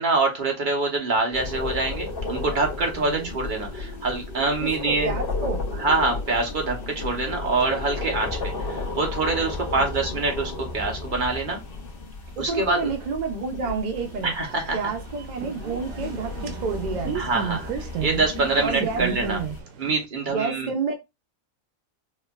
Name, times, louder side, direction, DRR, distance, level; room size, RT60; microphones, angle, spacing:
voice 1, 0.0-5.2 5.8-11.6 12.4-12.9 14.2-14.8 17.1-19.4 19.8-20.7, right 3 dB, 40° right, 1.0 m, -25 dB
sound 1, 1.3-19.6, left 3 dB, 45° left, 0.9 m, -34 dB
voice 2, 3.0-3.3 4.6-5.6 9.8-10.2 12.4-14.3 14.7-17.2 18.5-19.0 20.3-20.9, right 4 dB, 65° right, 0.4 m, -29 dB
sound 2, 14.0-20.1, right 8 dB, 85° right, 1.0 m, -34 dB
4.3 x 2.5 x 2.3 m
omnidirectional pair, 1.4 m